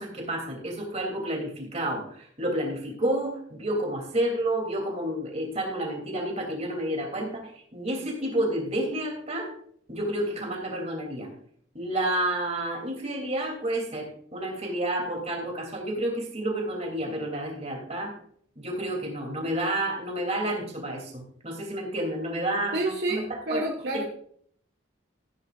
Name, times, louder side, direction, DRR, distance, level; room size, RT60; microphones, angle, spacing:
voice 1, 0.0-9.5 9.9-11.3 11.7-18.1 18.5-23.6 23.9-24.0, right 1 dB, 35° right, 1 dB, 3.1 m, -30 dB
voice 2, 22.7-24.0, right 1 dB, 55° right, 1 dB, 1.5 m, -29 dB
15.0 x 10.5 x 2.5 m, 0.62 s
head